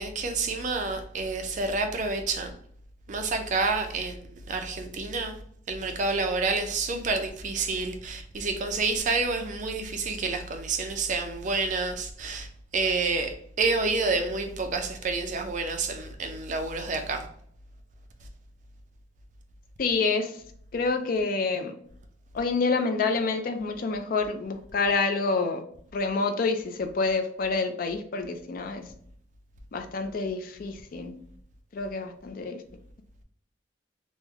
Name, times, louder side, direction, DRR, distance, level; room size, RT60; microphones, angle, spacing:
voice 1, 0.0-2.5 3.1-5.3 5.7-12.5 12.7-17.2, right 3 dB, 45° right, 0.4 m, -29 dB
voice 2, 19.8-20.4 20.7-21.7 22.3-25.6 25.9-28.8 29.7-31.2 31.7-32.6, left 4 dB, 50° left, 0.4 m, -27 dB
3.1 x 2.1 x 3.4 m
head